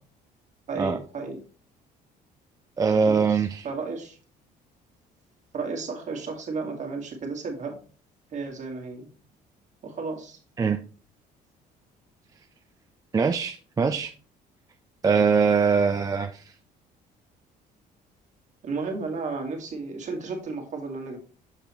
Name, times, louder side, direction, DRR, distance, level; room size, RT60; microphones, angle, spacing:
voice 1, 0.7-1.4 3.0-4.2 5.5-7.8 8.3-9.1 9.8-10.4 13.8-14.0 18.6-21.2, right 4 dB, 45° right, 2 dB, 1.8 m, -33 dB
voice 2, 2.8-3.7 10.6-10.8 13.1-14.1 15.0-16.5, right 5 dB, 20° right, 6 dB, 0.4 m, -22 dB
6.6 x 5.5 x 3.0 m, 0.37 s
cardioid pair, 110°, 17 cm